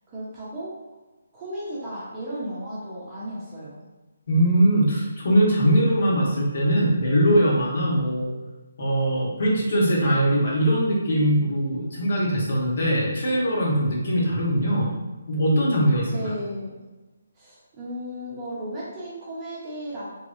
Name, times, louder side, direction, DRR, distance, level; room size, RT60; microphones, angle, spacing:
voice 1, 0.1-0.8 1.3-3.8 16.1-16.7 17.3-20.1, equal, 15° right, -8 dB, 0.8 m, -34 dB
voice 2, 4.3-8.3 8.8-14.9 15.3-16.0, equal, 55° left, -4 dB, 1.3 m, -21 dB
3.7 x 3.2 x 2.7 m, 1.1 s
hypercardioid pair, 170°, 0 cm